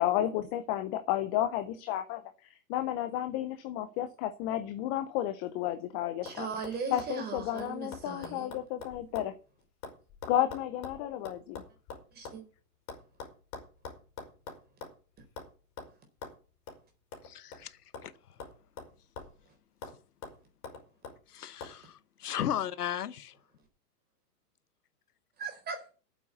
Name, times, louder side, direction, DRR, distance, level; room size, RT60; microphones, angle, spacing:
voice 1, 0.0-2.2 2.7-6.5 6.9-9.3 10.3-11.6, left 12 dB, 15° left, 0.4 m, -32 dB
sound 1, 5.5-5.9 6.3-6.4 6.6-9.3 9.6-12.4 12.9-15.0 15.4-15.5 15.8-15.9 16.2-16.4 16.7-16.8 17.1-18.1 18.4-19.4 19.8-20.0 20.2-21.2 21.6-21.8, left 4 dB, 35° left, 4.4 m, -45 dB
voice 2, 6.2-8.5 12.1-12.4 25.4-25.8, right 5 dB, 20° right, 4.1 m, -38 dB
voice 3, 17.2-18.1 21.3-23.4, left 10 dB, 70° left, 1.1 m, -36 dB
9.0 x 7.7 x 8.4 m
hypercardioid pair, 125°, 47 cm